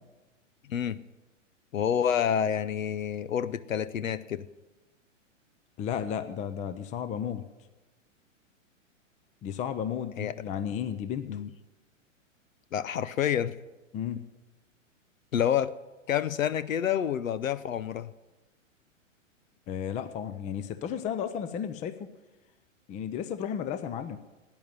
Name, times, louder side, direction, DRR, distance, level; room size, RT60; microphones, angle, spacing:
voice 1, 1.7-4.5 10.2-10.4 11.3-11.5 12.7-13.5 15.3-15.8 16.1-18.1, left 9 dB, 80° left, 16 dB, 0.8 m, -28 dB
voice 2, 5.8-7.4 9.4-11.3 13.9-14.2 19.7-22.1 22.9-24.2, left 8 dB, 20° left, 11 dB, 0.6 m, -33 dB
12.0 x 9.4 x 9.6 m, 1.1 s
hypercardioid pair, 120°, 39 cm